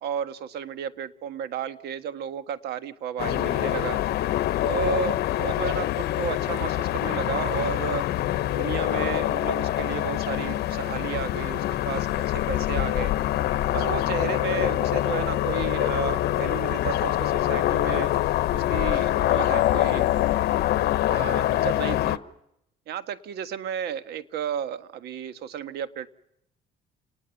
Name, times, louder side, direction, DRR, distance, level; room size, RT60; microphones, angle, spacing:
voice 1, 0.0-4.0 4.6-8.1 8.5-13.1 13.7-18.1 18.5-20.1 21.1-22.2 22.9-26.1, right 9 dB, 75° right, 11 dB, 1.5 m, -33 dB
sound 1, 3.2-22.2, left 14 dB, 70° left, 1.0 m, -25 dB
29.5 x 20.0 x 7.1 m, 0.80 s
cardioid pair, 110°, 17 cm